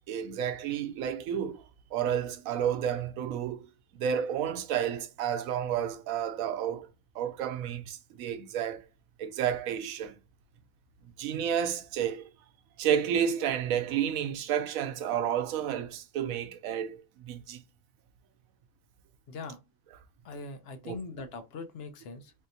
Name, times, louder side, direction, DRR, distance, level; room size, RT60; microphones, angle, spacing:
voice 1, 0.1-1.6 1.9-3.7 3.9-6.9 7.1-8.8 9.2-10.2 11.2-12.3 12.8-17.6 20.8-21.0, right 9 dB, 90° right, 1.0 m, -31 dB
voice 2, 19.3-19.6 20.2-22.3, left 3 dB, 60° left, 0.7 m, -41 dB
3.6 x 2.7 x 2.6 m
omnidirectional pair, 1.4 m